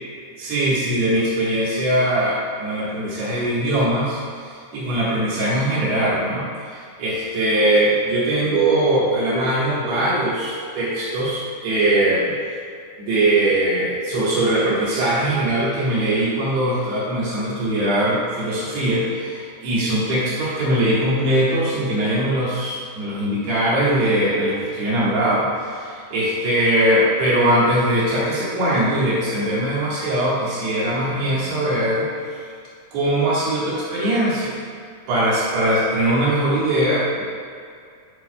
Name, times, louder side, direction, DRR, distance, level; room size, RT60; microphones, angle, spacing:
voice 1, 0.4-4.2 4.7-12.3 13.0-32.4 32.9-34.6 35.1-37.2, right 1 dB, 65° right, -8 dB, 3.3 m, -21 dB
10.5 x 6.0 x 2.2 m, 2.3 s
omnidirectional pair, 5.6 m